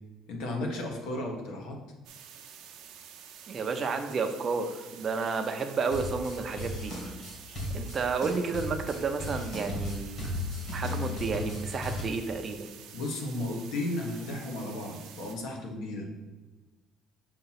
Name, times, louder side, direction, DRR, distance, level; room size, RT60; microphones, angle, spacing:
voice 1, 0.3-1.8 12.9-16.1, left 1 dB, 65° left, 1 dB, 1.2 m, -34 dB
sound 1, 2.0-15.4, right 8 dB, 65° right, 0.7 m, -49 dB
voice 2, 3.5-6.9 7.7-10.3 10.7-12.7, right 4 dB, 25° right, 5 dB, 0.5 m, -31 dB
sound 2, 5.9-12.0, left 1 dB, 35° left, 1.8 m, -36 dB
6.6 x 2.9 x 5.7 m, 1.2 s
cardioid pair, 175°, 0 cm